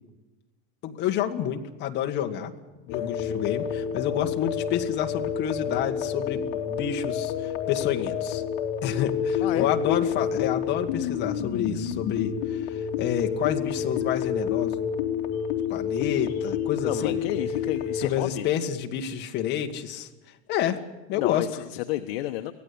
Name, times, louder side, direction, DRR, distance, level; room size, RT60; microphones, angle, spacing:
voice 1, 0.8-2.5 2.8-8.4 8.8-14.8 15.7-17.2 18.0-20.1 20.5-20.8 21.1-21.5, left 10 dB, 35° left, 4 dB, 1.8 m, -29 dB
voice 2, 2.9-3.4 9.4-9.7 16.8-18.5 21.1-22.5, left 14 dB, 70° left, 8 dB, 1.1 m, -31 dB
sound 1, 2.9-18.0, left 8 dB, 50° left, 3.3 m, -29 dB
24.5 x 17.0 x 8.6 m, 1.1 s
supercardioid pair, 165°, 31 cm